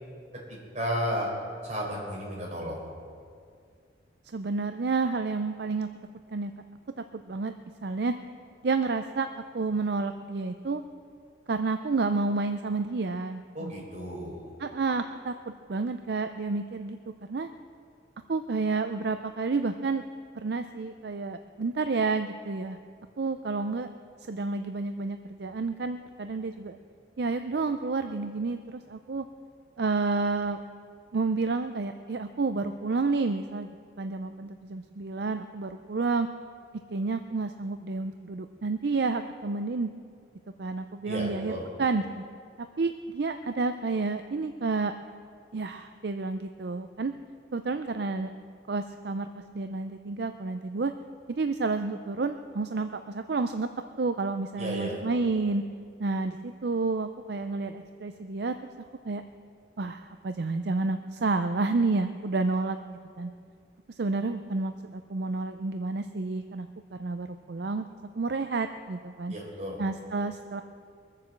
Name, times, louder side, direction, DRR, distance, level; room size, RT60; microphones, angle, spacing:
voice 1, 0.7-1.3 1.6-2.8 13.5-14.5 41.0-41.7 54.6-55.0 69.3-69.8, equal, 40° right, -3 dB, 4.1 m, -33 dB
voice 2, 4.3-5.9 6.3-6.5 7.1-7.5 7.8-8.1 8.6-10.8 11.5-13.7 14.6-17.0 17.3-17.5 18.3-20.0 20.4-22.8 23.2-23.9 24.3-26.8 27.2-29.3 29.8-30.6 31.1-33.7 34.0-36.3 36.9-39.9 40.6-41.5 41.8-42.2 42.8-44.9 45.5-47.1 47.5-48.3 48.7-49.3 49.5-50.9 51.3-53.7 54.0-55.6 56.0-58.5 59.0-59.2 59.8-62.8 63.2-63.3 63.9-67.8 68.2-69.3 69.8-70.6, right 3 dB, 60° right, 8 dB, 0.5 m, -30 dB
22.0 x 7.5 x 7.4 m, 2.2 s
head